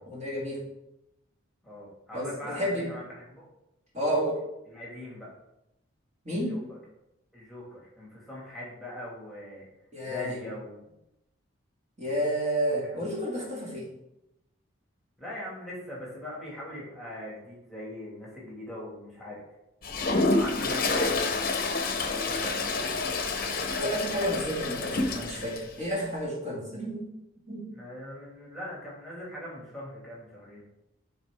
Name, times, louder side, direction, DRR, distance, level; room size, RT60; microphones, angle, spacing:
voice 1, 0.1-0.6 2.1-2.9 3.9-4.4 6.3-6.6 9.9-10.4 12.0-13.9 23.8-27.1 27.4-27.7, equal, 35° right, -5 dB, 2.0 m, -31 dB
voice 2, 1.6-3.5 4.7-5.3 6.3-6.6 7.3-9.6 10.1-10.9 12.8-13.0 15.2-19.4 20.1-23.0 27.7-30.6, left 1 dB, ahead, -6 dB, 1.9 m, -41 dB
Toilet flush, 19.8-25.6, left 3 dB, 45° left, 0.8 m, -28 dB
11.0 x 4.1 x 3.4 m, 0.88 s
head